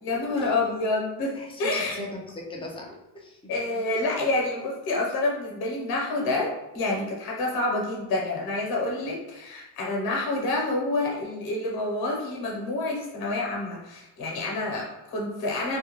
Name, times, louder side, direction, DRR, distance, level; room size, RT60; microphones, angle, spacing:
voice 1, 0.0-2.0 3.5-15.8, left 2 dB, 55° left, -1 dB, 0.9 m, -28 dB
voice 2, 1.3-3.4, left 2 dB, 15° left, -1 dB, 0.4 m, -39 dB
2.4 x 2.2 x 2.9 m, 0.97 s
cardioid pair, 130°, 45 cm